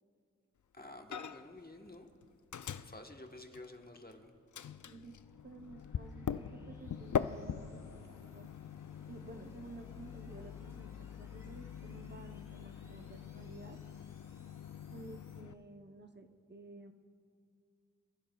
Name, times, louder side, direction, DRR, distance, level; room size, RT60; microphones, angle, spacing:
voice 1, 0.7-2.1 2.6-4.3, left 2 dB, 30° left, 3 dB, 1.2 m, -51 dB
Microwave oven, 1.1-1.6 1.9-4.1 4.5-15.5, left 8 dB, 75° left, 0.4 m, -43 dB
sound 1, 2.0-15.4, equal, 10° right, 2.2 m, -69 dB
voice 2, 4.8-5.2 5.4-8.1 8.3-8.5 9.1-13.8 14.9-16.9, right 3 dB, 35° right, 5 dB, 0.7 m, -53 dB
26.5 x 15.5 x 2.3 m, 2.4 s
wide cardioid pair, 60°, 30 cm